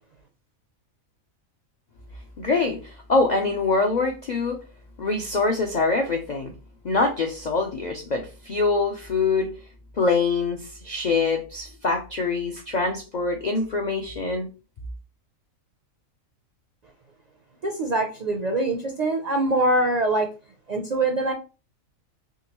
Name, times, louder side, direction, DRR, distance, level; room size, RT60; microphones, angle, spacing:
voice 1, 2.4-4.6 5.0-6.5 6.8-9.5 10.0-14.5, left 3 dB, 65° left, 0.4 m, -24 dB
voice 2, 17.6-20.3 20.7-21.3, right 2 dB, 55° right, 0.4 m, -23 dB
3.8 x 2.9 x 2.9 m
omnidirectional pair, 1.4 m